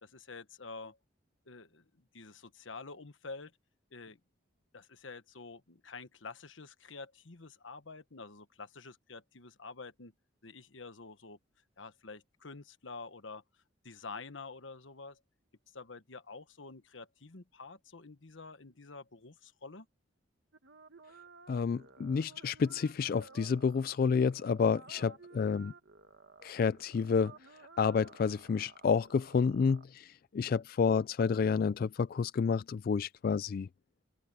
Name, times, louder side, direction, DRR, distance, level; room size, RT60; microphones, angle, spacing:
voice 1, 0.0-1.0 1.5-3.5 3.9-4.2 4.7-10.1 10.4-11.4 11.8-13.4 13.8-15.2 15.7-19.9, left 4 dB, 85° left, 1.3 m, -48 dB
sound 1, 20.5-29.8, right 4 dB, 70° right, 1.7 m, -56 dB
voice 2, 21.5-25.7 26.4-27.3 27.8-33.7, left 5 dB, 50° left, 0.3 m, -30 dB
open air
head